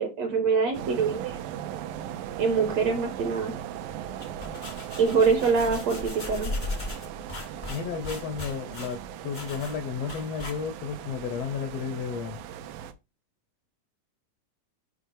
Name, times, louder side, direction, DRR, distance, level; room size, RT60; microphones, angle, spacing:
voice 1, 0.0-1.4 2.4-3.5 5.0-6.5, right 5 dB, 70° right, 1.6 m, -24 dB
sound 1, 0.7-12.9, right 10 dB, 90° right, 2.4 m, -38 dB
sound 2, 4.0-11.0, left 2 dB, 50° left, 0.5 m, -37 dB
voice 2, 7.7-12.4, left 6 dB, 90° left, 1.4 m, -33 dB
7.7 x 4.6 x 3.3 m
omnidirectional pair, 3.9 m